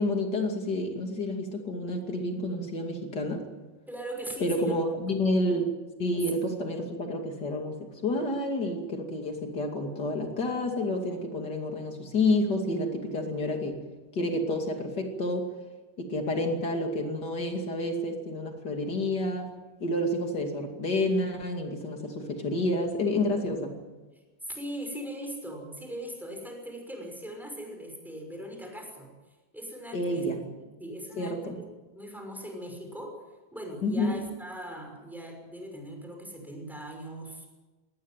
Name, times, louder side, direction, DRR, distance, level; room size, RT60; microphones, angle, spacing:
voice 1, 0.0-3.4 4.4-5.7 6.0-13.7 14.1-15.5 16.0-19.5 19.8-23.7 29.9-30.4 31.2-31.6 33.8-34.2, left 1 dB, 40° left, 3 dB, 1.5 m, -29 dB
voice 2, 3.9-4.7 24.4-29.1 29.5-30.3 30.6-31.6 31.9-33.2 33.5-37.5, right 1 dB, ahead, 2 dB, 5.3 m, -40 dB
22.0 x 17.5 x 9.1 m, 1.2 s
omnidirectional pair, 5.9 m